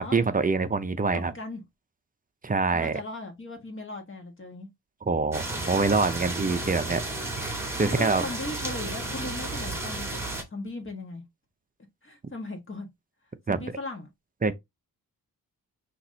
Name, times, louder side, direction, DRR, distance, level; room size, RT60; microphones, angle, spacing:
voice 1, 0.0-1.3 2.4-3.0 5.1-7.0 7.8-8.2 13.5-13.6 14.4-14.5, right 4 dB, 25° right, 0.5 m, -25 dB
voice 2, 1.1-1.6 2.7-4.7 7.9-11.2 12.0-12.9 13.5-14.1, left 2 dB, 30° left, 1.5 m, -38 dB
sound 1, 5.3-10.4, right 2 dB, 5° right, 1.8 m, -33 dB
5.8 x 3.0 x 2.7 m
wide cardioid pair, 110°, 38 cm